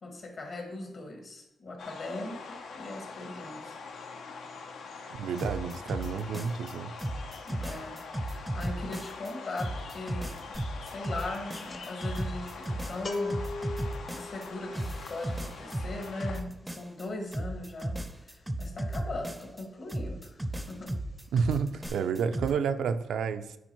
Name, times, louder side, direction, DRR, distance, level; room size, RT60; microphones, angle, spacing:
voice 1, 0.0-3.8 7.5-8.0 8.2-10.3 10.8-13.5 14.1-20.4 20.7-20.9, left 2 dB, 60° left, 1.8 m, -39 dB
sound 1, 1.8-16.4, left 4 dB, 90° left, 0.7 m, -44 dB
voice 2, 5.1-7.0 21.3-23.6, right 6 dB, 90° right, 0.4 m, -30 dB
sound 2, 5.4-6.7 7.0-9.3 9.6-14.5 14.7-17.0 17.3-19.6 19.9-22.5, right 1 dB, 10° right, 0.5 m, -35 dB
sound 3, 10.5-10.8 11.1-19.7 19.9-20.2 20.4-21.3 21.5-21.9, left 3 dB, 40° left, 0.9 m, -41 dB
9.5 x 4.6 x 3.0 m
cardioid pair, 85°, 0 cm